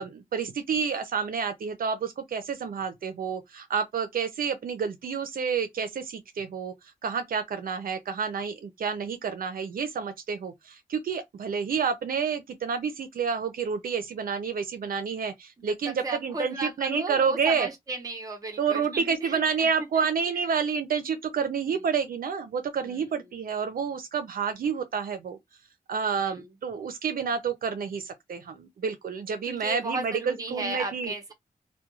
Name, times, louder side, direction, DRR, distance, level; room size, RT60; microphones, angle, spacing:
voice 1, 0.0-6.7 7.0-17.7 18.6-25.4 25.9-31.1, right 6 dB, 80° right, 0.5 m, -29 dB
voice 2, 15.9-19.7 20.0-20.1 21.6-21.8 22.8-23.1 26.1-26.5 29.4-31.3, right 3 dB, 25° right, 0.8 m, -35 dB
2.3 x 2.2 x 2.9 m
wide cardioid pair, 170°, 15 cm